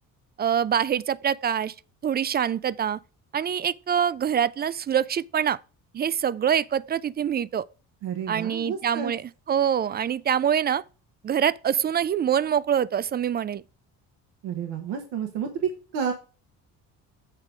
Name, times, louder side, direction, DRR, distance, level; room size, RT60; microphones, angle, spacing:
voice 1, 0.4-1.7 2.0-3.0 3.3-5.6 5.9-7.7 8.3-10.8 11.2-13.6, right 8 dB, 25° right, 0.3 m, -25 dB
voice 2, 8.0-9.1 14.4-16.1, right 7 dB, 80° right, 1.2 m, -30 dB
7.6 x 3.6 x 6.0 m
supercardioid pair, 70°, 41 cm